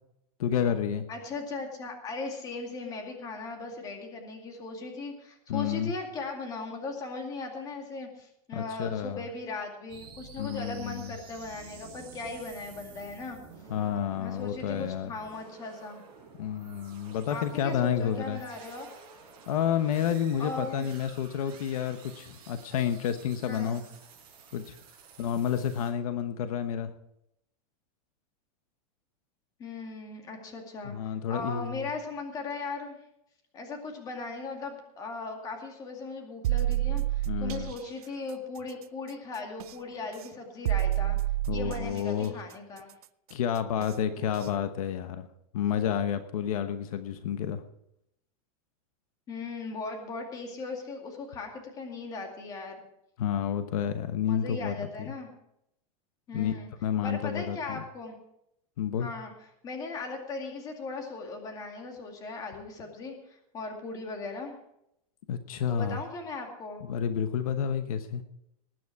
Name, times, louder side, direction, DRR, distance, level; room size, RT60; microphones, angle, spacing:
voice 1, 0.4-1.1 5.5-5.9 8.5-9.3 10.4-11.1 13.7-15.1 16.4-18.4 19.5-23.8 24.5-24.8 25.2-26.9 30.8-31.8 37.3-37.7 41.5-42.3 43.3-45.3 45.5-47.6 53.2-55.1 56.3-56.5 56.8-57.8 58.8-59.1 65.3-66.0 66.9-68.2, left 9 dB, 70° left, 9 dB, 1.1 m, -30 dB
voice 2, 1.1-13.4 14.2-16.0 17.3-18.9 20.4-20.9 23.5-23.8 29.6-33.0 33.5-41.2 41.5-42.9 49.3-52.8 54.3-55.3 56.3-56.7 57.0-58.1 59.0-59.3 59.6-64.6 65.7-66.8, left 3 dB, 20° left, 3 dB, 2.3 m, -38 dB
sound 1, 9.9-25.9, right 5 dB, 25° right, 5.0 m, -51 dB
sound 2, 36.4-37.7 39.6-39.7 40.7-42.0 43.8-43.9 44.4-44.5, right 15 dB, 85° right, 0.5 m, -28 dB
19.5 x 9.3 x 4.7 m, 0.80 s
supercardioid pair, 170°, 19 cm